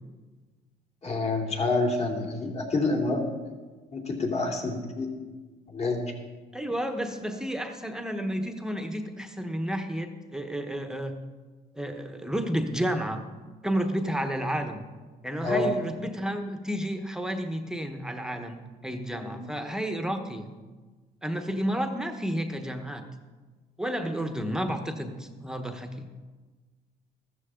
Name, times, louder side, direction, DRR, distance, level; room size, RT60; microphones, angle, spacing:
voice 1, 1.0-3.2 3.9-5.1 5.7-6.0 15.4-15.7 19.1-19.4, left 3 dB, 40° left, 1 dB, 2.9 m, -27 dB
voice 2, 6.5-11.2 11.7-13.2 13.6-14.8 15.2-20.5 21.2-23.0 23.8-26.1, equal, 5° right, 6 dB, 1.1 m, -31 dB
14.5 x 14.0 x 3.8 m, 1.3 s
cardioid pair, 110°, 17 cm